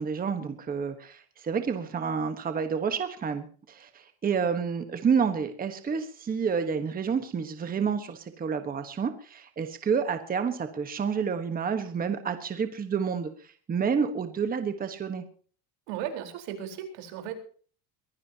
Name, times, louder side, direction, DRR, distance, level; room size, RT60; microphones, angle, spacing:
voice 1, 0.0-15.2, right 6 dB, 20° right, 8 dB, 1.3 m, -29 dB
voice 2, 15.9-17.4, right 9 dB, 85° right, 6 dB, 4.4 m, -36 dB
23.0 x 16.5 x 2.9 m, 0.44 s
cardioid pair, 180°, 47 cm